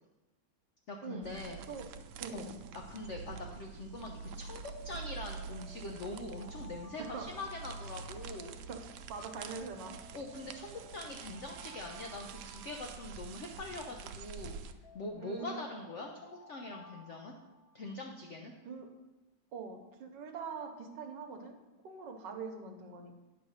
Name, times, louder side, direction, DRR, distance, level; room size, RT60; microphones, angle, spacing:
voice 1, 0.9-1.6 2.3-2.5 2.7-8.6 10.1-14.6 14.9-17.3 17.7-18.5, left 2 dB, 70° left, 2 dB, 0.6 m, -43 dB
sound 1, 1.2-14.7, right 5 dB, 85° right, 1.4 m, -46 dB
voice 2, 2.2-2.6 7.0-7.3 8.7-8.8 9.1-10.0 15.2-15.7 18.6-18.9 19.5-21.6 21.8-23.2, right 5 dB, 70° right, 5 dB, 1.4 m, -43 dB
Alarm, 5.3-8.7 9.8-13.7 14.8-18.1, left 1 dB, 40° left, 0.9 m, -57 dB
9.4 x 3.4 x 6.3 m, 1.1 s
omnidirectional pair, 2.1 m